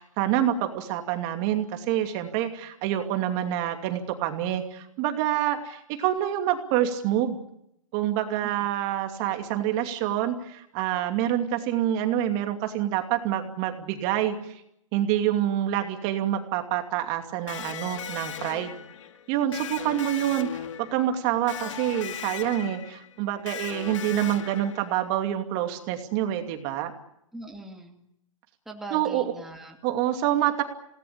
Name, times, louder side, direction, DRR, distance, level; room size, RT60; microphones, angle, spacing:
voice 1, 0.0-7.4 7.9-14.6 14.9-18.8 19.3-26.9 28.9-29.3 29.8-30.6, right 11 dB, 35° right, 6 dB, 2.6 m, -27 dB
Electric guitar, 17.5-25.2, left 9 dB, 65° left, 2.2 m, -38 dB
voice 2, 23.8-24.4 27.3-28.0 28.7-29.8, right 2 dB, ahead, 0 dB, 2.5 m, -42 dB
28.5 x 18.5 x 8.7 m, 0.79 s
hypercardioid pair, 145°, 17 cm